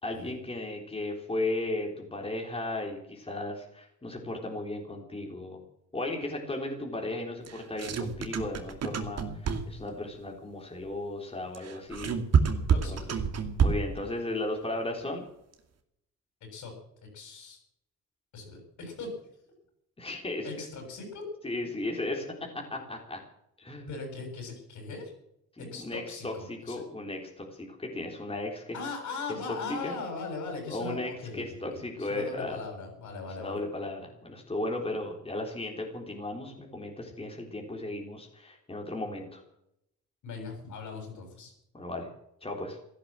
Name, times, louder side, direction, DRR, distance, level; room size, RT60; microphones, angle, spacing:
voice 1, 0.0-5.6 5.9-12.1 12.7-13.0 13.6-15.3 20.0-20.7 21.4-22.3 22.5-23.2 23.6-23.9 25.5-28.8 29.3-29.9 30.7-32.6 33.3-39.4 41.7-42.1 42.4-42.8, left 2 dB, 20° left, 1 dB, 3.7 m, -35 dB
sound 1, 7.4-9.9 11.5-14.0, right 6 dB, 55° right, 2.4 m, -27 dB
voice 2, 12.7-13.2 16.5-16.7 17.0-17.6 18.3-19.1 20.4-21.3 23.9-25.1 25.6-26.8 28.7-33.6 40.2-41.5, left 4 dB, 75° left, 3 dB, 7.7 m, -39 dB
15.5 x 11.5 x 7.5 m, 0.78 s
cardioid pair, 90°, 30 cm